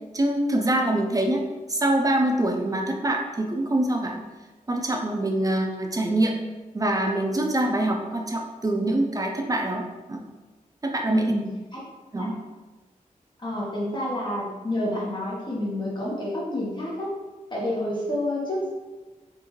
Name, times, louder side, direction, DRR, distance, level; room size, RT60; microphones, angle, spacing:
voice 1, 0.1-1.4 1.7-4.3 4.7-6.4 6.7-10.2 10.8-11.3 12.1-12.4, right 1 dB, 25° right, 2 dB, 0.4 m, -24 dB
voice 2, 11.1-11.4 11.7-11.8 12.2-12.3 13.4-17.1 17.5-18.7, left 1 dB, 35° left, -6 dB, 1.0 m, -29 dB
3.6 x 2.6 x 3.0 m, 1.2 s
wide cardioid pair, 110°, 14 cm